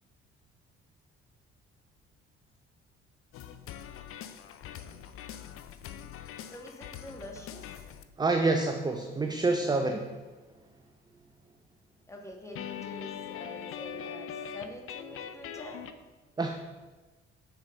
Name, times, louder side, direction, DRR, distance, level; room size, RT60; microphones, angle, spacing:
sound 1, 3.3-8.0 12.5-15.9, left 9 dB, 45° left, 0.6 m, -42 dB
voice 1, 6.5-7.7 12.1-15.9, equal, 10° left, 1 dB, 1.7 m, -46 dB
voice 2, 8.2-10.2 16.4-16.5, right 3 dB, 15° right, 4 dB, 0.7 m, -27 dB
7.2 x 7.0 x 3.8 m, 1.2 s
figure-of-eight pair, 50°, 32 cm